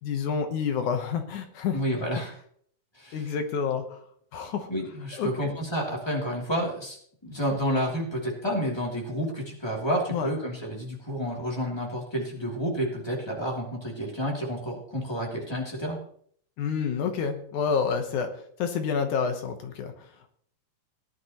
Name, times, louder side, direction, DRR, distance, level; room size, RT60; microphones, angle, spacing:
voice 1, 0.0-1.8 3.1-4.0 4.3-4.7 5.2-5.5 10.1-10.3 16.6-18.3 18.6-19.9, left 6 dB, 70° left, 6 dB, 2.5 m, -28 dB
voice 2, 1.7-2.3 2.9-3.3 4.7-7.0 7.2-16.0, equal, 10° left, -2 dB, 2.4 m, -30 dB
18.0 x 11.0 x 3.0 m, 0.62 s
omnidirectional pair, 3.7 m